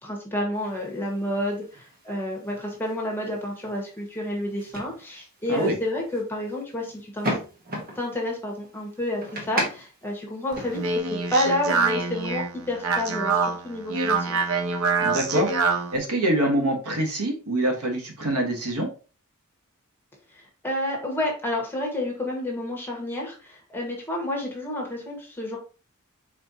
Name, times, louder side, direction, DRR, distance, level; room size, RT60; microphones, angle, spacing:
voice 1, 0.0-7.4 7.9-10.8 11.1-14.4 20.3-25.6, left 1 dB, 10° left, -1 dB, 1.3 m, -30 dB
sound 1, 0.5-11.0, right 1 dB, 45° right, 1.2 m, -37 dB
Speech, 10.5-16.0, right 4 dB, 70° right, 0.9 m, -25 dB
voice 2, 15.0-18.9, right 1 dB, 85° right, 3 dB, 1.3 m, -25 dB
4.4 x 4.2 x 2.8 m, 0.35 s
head